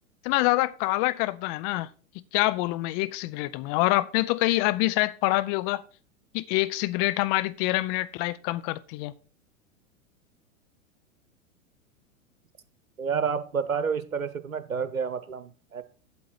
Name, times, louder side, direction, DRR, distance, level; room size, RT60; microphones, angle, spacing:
voice 1, 0.2-1.9 2.3-5.8 6.3-9.1, left 19 dB, 35° left, 0.5 m, -26 dB
voice 2, 13.0-15.8, right 6 dB, 85° right, 1.0 m, -29 dB
8.4 x 7.8 x 4.4 m
figure-of-eight pair, 95°, 40 cm